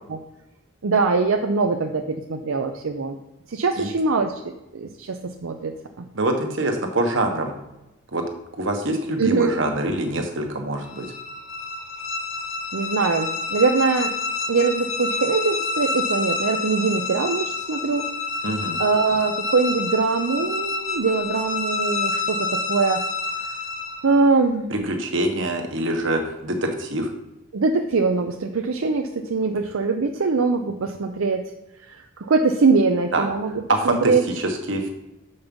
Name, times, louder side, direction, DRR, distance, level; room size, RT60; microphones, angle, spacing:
voice 1, 0.8-3.2 3.5-4.3 4.7-5.7 6.0-6.1 9.2-9.5 12.7-14.1 14.5-18.1 18.8-23.0 24.0-24.8 27.5-31.4 31.8-34.2, right 4 dB, 85° right, 4 dB, 0.6 m, -22 dB
voice 2, 6.1-7.5 8.1-8.2 8.6-11.1 18.4-18.8 24.7-27.1 33.1-33.3 33.7-34.9, right 1 dB, 65° right, 4 dB, 1.3 m, -25 dB
sound 1, 10.8-24.2, left 3 dB, 75° left, 1.0 m, -28 dB
7.1 x 5.4 x 5.3 m, 0.96 s
head